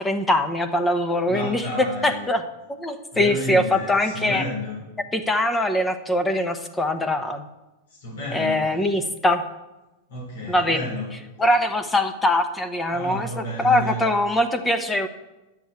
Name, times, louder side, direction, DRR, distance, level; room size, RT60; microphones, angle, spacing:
voice 1, 0.0-2.4 2.7-4.4 5.1-7.4 8.3-9.4 10.5-10.8 11.4-15.1, left 1 dB, 10° left, 8 dB, 0.9 m, -22 dB
voice 2, 1.3-2.2 3.1-4.8 7.9-8.7 10.1-11.1 12.9-14.0, left 1 dB, 85° left, -5 dB, 4.4 m, -31 dB
10.5 x 7.1 x 8.1 m, 1.0 s
supercardioid pair, 135°, 0 cm